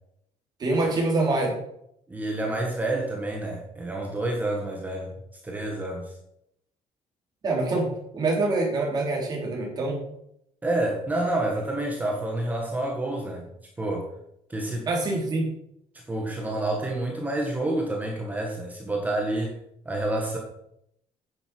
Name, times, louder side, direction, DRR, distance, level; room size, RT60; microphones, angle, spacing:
voice 1, 0.6-1.6 7.4-10.0 14.9-15.5, right 2 dB, 30° right, -1 dB, 3.7 m, -25 dB
voice 2, 2.1-6.1 10.6-13.5 13.8-14.1 14.5-14.9 15.9-19.6 19.8-20.4, right 1 dB, 10° right, 0 dB, 1.7 m, -28 dB
9.9 x 7.8 x 6.2 m, 0.75 s
cardioid pair, 175°, 13 cm